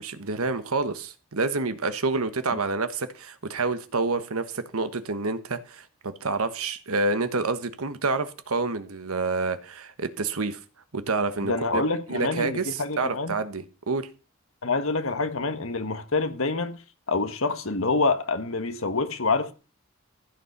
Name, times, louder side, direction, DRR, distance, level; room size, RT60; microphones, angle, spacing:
voice 1, 0.0-10.6 10.9-11.8 12.1-14.1, right 3 dB, 85° right, 1.2 m, -28 dB
voice 2, 11.4-13.3 14.6-16.8 17.1-19.5, left 3 dB, 70° left, 1.5 m, -26 dB
15.0 x 6.8 x 5.9 m
head